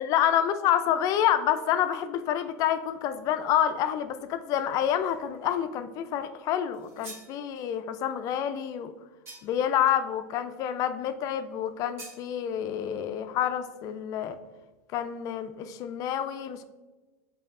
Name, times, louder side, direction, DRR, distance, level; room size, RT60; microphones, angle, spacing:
voice 1, 0.0-8.9 9.4-14.4 14.9-16.6, left 10 dB, 45° left, 10 dB, 0.3 m, -28 dB
sound 1, 6.7-7.4 9.3-9.7 12.0-12.2, right 2 dB, 30° right, 1.3 m, -45 dB
5.1 x 2.7 x 2.4 m, 1.2 s
hypercardioid pair, 105°, 8 cm